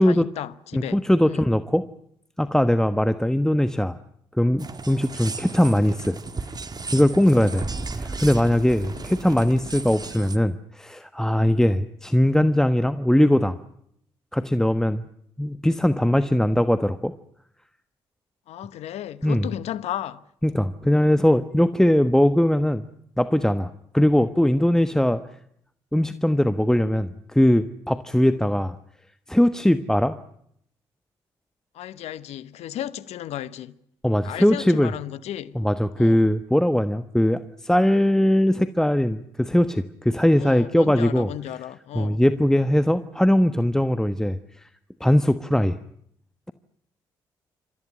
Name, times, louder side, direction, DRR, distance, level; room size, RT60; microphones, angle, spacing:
voice 1, 0.0-1.0 1.2-1.5 8.8-9.0 11.6-11.8 18.5-20.3 31.7-33.7 34.2-35.6 36.0-36.2 40.4-42.2, left 11 dB, 70° left, 1.0 m, -34 dB
voice 2, 0.7-1.8 2.4-4.0 4.3-6.2 6.9-7.7 8.0-13.6 14.3-15.0 15.4-17.1 19.2-19.5 20.4-22.8 23.2-25.2 25.9-28.8 29.3-30.2 34.0-34.9 35.5-41.3 41.9-44.7 45.0-45.8, left 1 dB, 5° left, 1.2 m, -20 dB
sound 1, 4.6-10.4, right 3 dB, 35° right, 2.0 m, -34 dB
28.0 x 14.5 x 9.9 m
hypercardioid pair, 45°, 11 cm